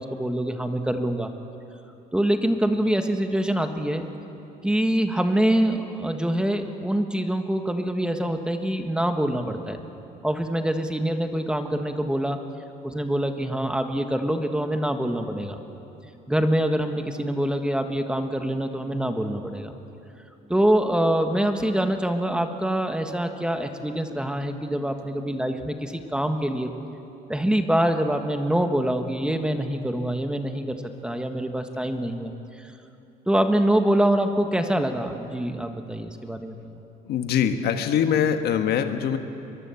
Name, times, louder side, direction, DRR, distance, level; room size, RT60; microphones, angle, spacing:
voice 1, 0.0-1.3 2.1-4.1 4.6-9.8 10.2-12.4 12.8-15.6 16.3-19.7 20.5-26.7 27.3-32.3 32.6-32.7 33.3-36.5, right 1 dB, 5° right, 6 dB, 1.5 m, -25 dB
voice 2, 37.0-39.2, left 8 dB, 70° left, 7 dB, 1.6 m, -23 dB
22.5 x 22.5 x 7.1 m, 2.9 s
cardioid pair, 110°, 17 cm